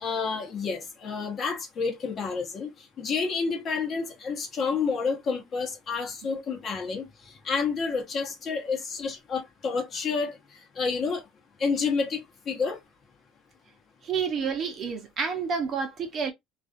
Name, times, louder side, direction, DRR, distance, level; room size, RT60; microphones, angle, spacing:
voice 1, 0.0-2.7 3.0-7.1 7.4-10.3 10.8-11.2 11.6-12.8, left 5 dB, 35° left, 0.9 m, -29 dB
voice 2, 14.0-16.3, right 6 dB, 35° right, 0.8 m, -29 dB
2.4 x 2.3 x 2.5 m
cardioid pair, 140°, 0 cm